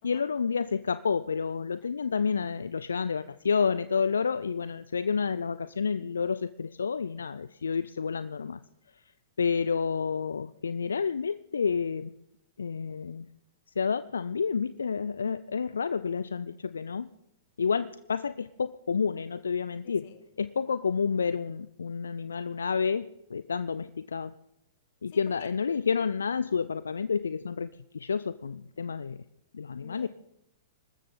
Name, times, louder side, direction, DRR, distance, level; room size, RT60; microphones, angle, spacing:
voice 1, 0.0-8.6 9.4-12.1 12.6-13.3 13.8-17.1 17.6-20.0 20.4-24.3 25.0-27.7 27.9-29.2 29.5-30.1, left 6 dB, 75° left, 15 dB, 0.4 m, -29 dB
voice 2, 19.8-20.2 25.1-25.5 29.8-30.1, left 12 dB, 50° left, 10 dB, 1.9 m, -50 dB
25.5 x 13.5 x 3.8 m, 0.84 s
figure-of-eight pair, 105°, 0 cm